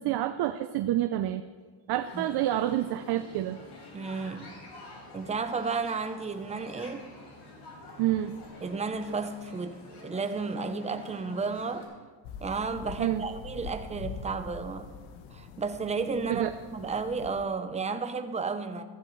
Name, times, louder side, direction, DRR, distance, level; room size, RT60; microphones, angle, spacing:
voice 1, 0.0-1.4 1.9-3.6 8.0-8.4 13.0-13.2 16.3-16.5, right 13 dB, 55° right, 0.6 m, -28 dB
sound 1, 2.0-11.8, left 2 dB, 55° left, 4.0 m, -48 dB
voice 2, 3.9-4.6 5.1-7.1 8.6-11.9 12.4-14.9 15.3-18.8, right 4 dB, 15° right, 0.7 m, -33 dB
sound 2, 12.2-17.4, left 5 dB, 85° left, 1.2 m, -44 dB
14.5 x 14.0 x 3.2 m
cardioid pair, 130°, 48 cm